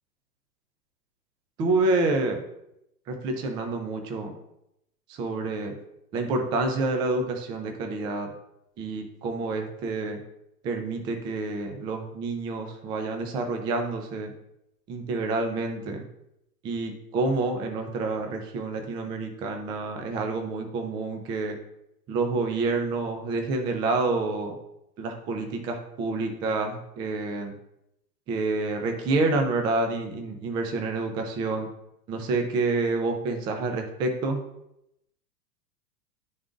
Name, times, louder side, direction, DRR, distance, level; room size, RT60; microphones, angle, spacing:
voice 1, 1.6-2.4 3.1-4.3 5.1-5.7 6.1-8.3 8.8-10.2 10.6-14.3 14.9-16.0 16.6-21.6 22.1-24.6 25.0-27.5 28.3-31.7 32.1-34.4, right 3 dB, 10° right, 4 dB, 0.3 m, -28 dB
11.0 x 3.9 x 2.4 m, 0.82 s
hypercardioid pair, 105°, 48 cm